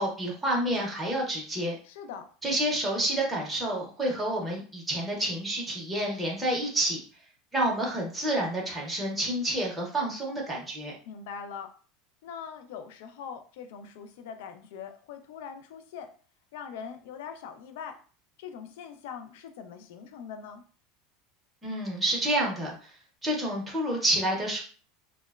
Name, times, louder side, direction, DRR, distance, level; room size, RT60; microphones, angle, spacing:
voice 1, 0.0-1.7 2.4-7.0 7.5-10.9 21.6-22.9 23.2-24.6, right 1 dB, 5° right, -4 dB, 0.6 m, -29 dB
voice 2, 1.8-2.3 11.1-11.7 12.2-16.2 16.5-18.0 18.4-20.6, left 7 dB, 70° left, 8 dB, 0.3 m, -42 dB
2.9 x 2.0 x 2.2 m, 0.39 s
supercardioid pair, 175°, 0 cm